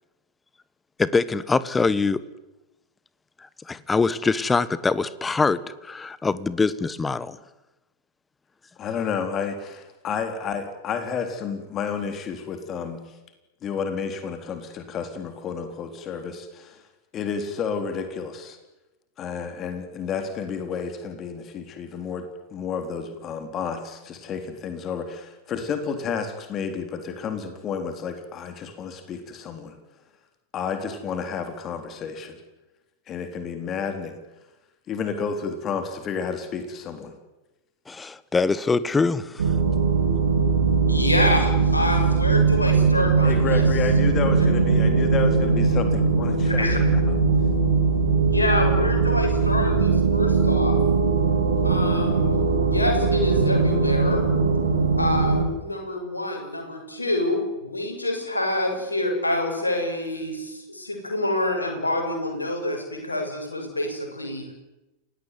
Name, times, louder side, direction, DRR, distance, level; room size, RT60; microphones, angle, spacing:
voice 1, 1.0-2.2 3.7-7.4 37.9-39.6, left 4 dB, 15° left, 18 dB, 1.3 m, -23 dB
voice 2, 8.8-13.0 13.6-16.8 17.1-18.6 19.2-29.7 30.5-32.4 33.1-34.2 34.9-37.1 43.2-47.0, left 6 dB, 30° left, 7 dB, 3.8 m, -31 dB
sound 1, 39.4-55.5, right 4 dB, 70° right, 3.9 m, -20 dB
voice 3, 40.9-43.6 46.5-46.8 48.3-50.8 51.6-54.3 55.0-64.5, left 1 dB, 80° left, 2 dB, 6.9 m, -27 dB
29.0 x 17.5 x 9.6 m, 1.0 s
figure-of-eight pair, 90°, 0 cm